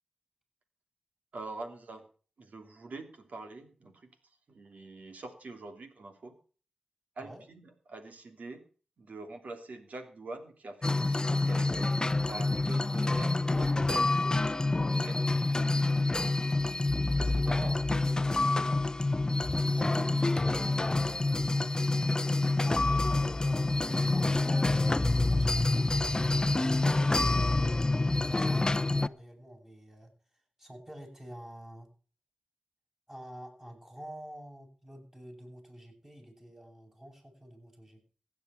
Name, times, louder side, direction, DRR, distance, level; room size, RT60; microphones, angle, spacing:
voice 1, 1.3-2.1 2.4-4.1 4.5-6.3 7.2-8.7 9.0-11.9 12.3-14.4 14.8-15.3 17.2-17.7 19.7-19.8 20.4-20.7, right 2 dB, 70° right, 6 dB, 3.0 m, -45 dB
sound 1, 10.8-29.1, left 2 dB, 30° left, 0.7 m, -27 dB
voice 2, 17.4-17.9 19.7-20.6 22.6-27.8 28.3-30.1 30.6-31.9 33.1-38.0, right 1 dB, 20° right, 1 dB, 8.0 m, -47 dB
15.5 x 9.7 x 5.7 m, 0.40 s
cardioid pair, 45°, 3 cm